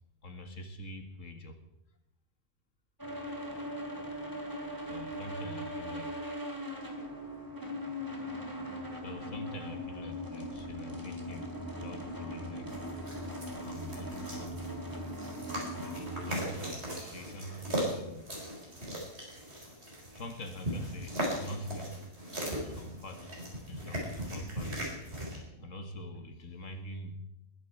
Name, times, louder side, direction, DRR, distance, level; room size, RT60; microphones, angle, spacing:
voice 1, 0.2-1.6 4.9-6.1 8.9-12.7 13.6-14.8 15.8-18.3 20.1-22.0 22.5-23.3 23.7-24.8 25.5-27.1, left 1 dB, 80° left, 6 dB, 2.2 m, -44 dB
sound 1, 3.0-16.4, equal, 15° right, 2.5 m, -40 dB
sound 2, 12.7-25.4, equal, 60° right, 4.6 m, -38 dB
21.5 x 10.5 x 4.6 m, 0.88 s
omnidirectional pair, 1.3 m